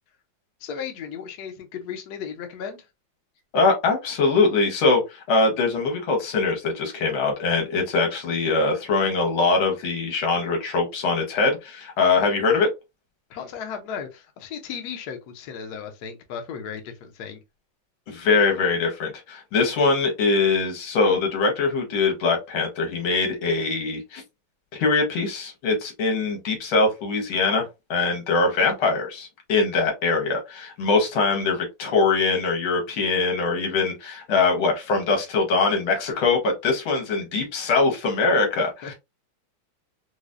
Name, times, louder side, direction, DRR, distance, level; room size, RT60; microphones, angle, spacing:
voice 1, 0.6-2.9 13.3-17.4 38.8-38.9, left 7 dB, 60° left, 1.1 m, -35 dB
voice 2, 3.5-12.7 18.1-24.2 24.7-38.9, left 3 dB, 80° left, 2.0 m, -22 dB
4.8 x 2.1 x 2.5 m
omnidirectional pair, 2.3 m